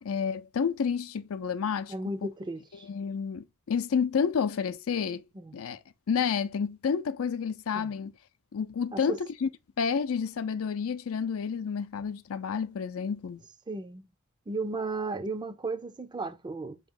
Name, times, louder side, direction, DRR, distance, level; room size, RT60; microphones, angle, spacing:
voice 1, 0.0-1.9 2.8-5.2 5.5-5.8 6.1-8.1 8.5-9.5 9.8-13.4, left 6 dB, 80° left, 0.4 m, -30 dB
voice 2, 1.9-2.9 5.4-5.5 7.7-7.9 8.9-9.2 13.7-14.1 14.5-16.8, right 3 dB, 20° right, 0.4 m, -35 dB
4.7 x 3.0 x 3.6 m
head